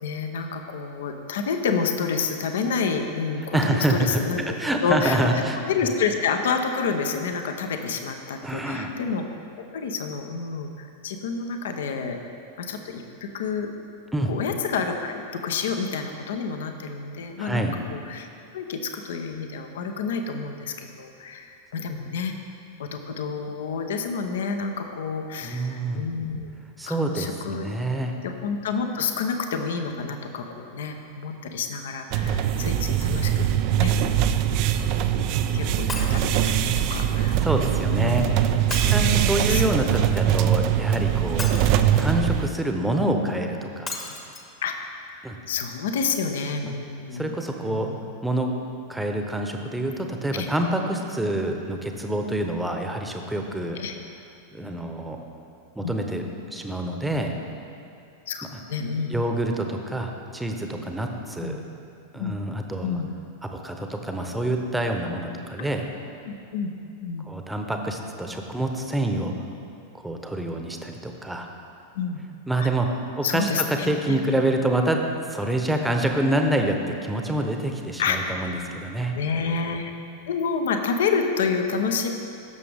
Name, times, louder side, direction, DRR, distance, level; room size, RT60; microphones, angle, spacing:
voice 1, 0.0-4.5 4.8-5.3 5.7-9.3 9.6-12.2 12.6-13.7 14.3-18.3 18.5-22.3 22.8-26.5 26.9-27.6 28.2-33.5 33.8-34.3 35.5-37.4 37.9-38.2 39.4-39.7 44.6-44.8 45.5-47.3 47.7-48.0 50.3-50.5 53.7-53.9 55.8-56.0 58.3-59.2 61.4-61.6 62.1-62.3 62.8-63.1 65.6-65.7 66.3-66.7 67.0-67.3 71.9-72.2 72.6-72.7 73.2-74.2 78.0-78.4 79.1-79.9 80.3-82.1, left 5 dB, 60° left, 5 dB, 0.8 m, -29 dB
voice 2, 3.5-4.2 4.6-5.6 8.4-8.9 14.1-14.3 17.4-17.8 25.4-26.1 26.8-28.2 37.4-41.5 42.0-43.9 45.2-45.4 46.7-46.8 47.1-47.9 48.2-48.5 48.9-53.8 54.5-55.2 55.7-56.2 56.5-57.3 58.5-58.6 59.1-61.6 62.1-63.0 63.4-65.8 67.3-69.4 69.9-71.5 72.5-75.0 75.3-79.1, right 1 dB, 5° right, 3 dB, 1.0 m, -27 dB
sound 1, 32.1-42.5, right 10 dB, 45° right, 0.4 m, -22 dB
Shatter, 35.9-36.3 38.7-39.6 41.4-42.2 43.9-44.4 45.1-45.2 45.4-45.5, left 3 dB, 20° left, 1.1 m, -34 dB
16.5 x 6.8 x 3.5 m, 2.6 s
figure-of-eight pair, 90°, 0 cm